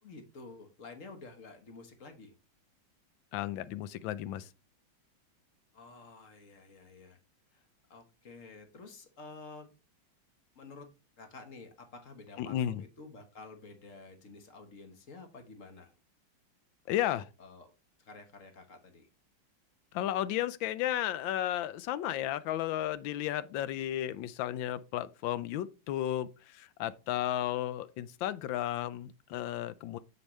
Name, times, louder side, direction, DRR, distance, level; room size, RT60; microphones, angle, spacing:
voice 1, 0.0-2.3 5.7-7.2 7.5-9.7 10.5-10.9 11.2-15.9 17.4-17.7 18.0-19.1, left 3 dB, 45° left, 1.5 m, -50 dB
voice 2, 3.3-4.5 12.4-12.8 16.9-17.2 19.9-30.0, left 12 dB, 75° left, 1.2 m, -33 dB
7.1 x 6.8 x 3.2 m
omnidirectional pair, 2.2 m